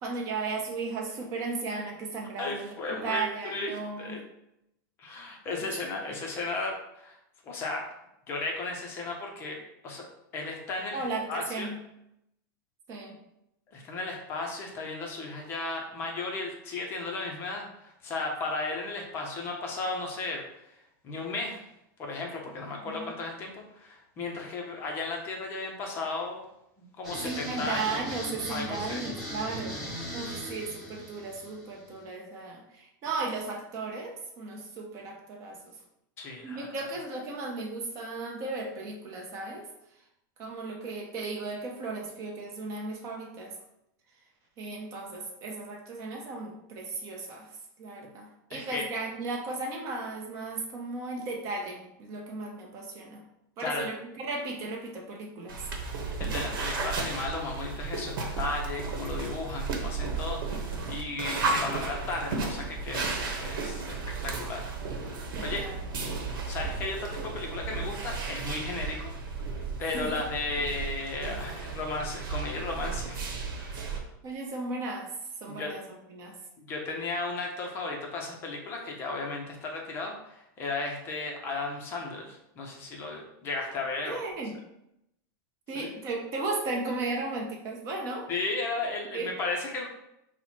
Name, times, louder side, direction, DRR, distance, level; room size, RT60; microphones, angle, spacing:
voice 1, 0.0-4.2 10.9-11.8 12.9-13.2 22.9-23.1 27.2-29.8 30.1-35.7 36.4-39.7 40.4-43.5 44.6-47.5 47.8-53.2 53.6-55.6 65.3-65.8 69.9-70.1 74.2-75.1 75.4-75.8 76.1-76.4 84.1-84.6 85.7-88.3 89.1-89.3, right 3 dB, 25° right, 0 dB, 0.7 m, -35 dB
voice 2, 2.4-4.2 5.0-7.2 7.5-7.9 8.3-10.1 10.3-11.0 11.3-11.7 13.7-20.4 21.0-21.6 22.0-26.4 26.8-28.0 28.5-29.0 36.2-36.7 48.5-48.9 53.6-53.9 56.2-63.1 63.4-64.6 65.4-65.6 66.4-69.1 69.5-73.2 73.7-74.0 75.5-75.7 76.6-84.2 85.7-85.9 88.3-89.9, left 3 dB, 20° left, 0 dB, 0.5 m, -35 dB
sound 1, 27.0-32.0, equal, ahead, 1.0 m, -39 dB
sound 2, 55.5-74.0, right 4 dB, 75° right, 0.9 m, -34 dB
4.3 x 2.1 x 4.2 m, 0.82 s
supercardioid pair, 175°, 11 cm